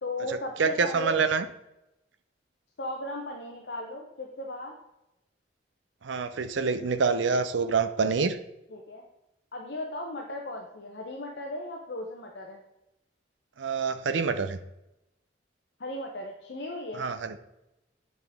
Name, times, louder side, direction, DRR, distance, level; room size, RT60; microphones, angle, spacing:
voice 1, 0.0-1.2 2.8-4.7 8.7-9.0 9.5-12.6 15.8-17.0, left 1 dB, 60° left, 0 dB, 0.8 m, -36 dB
voice 2, 0.6-1.5 6.0-8.4 13.6-14.6 16.9-17.4, right 5 dB, 75° right, 10 dB, 0.5 m, -26 dB
8.0 x 5.1 x 3.5 m, 0.90 s
head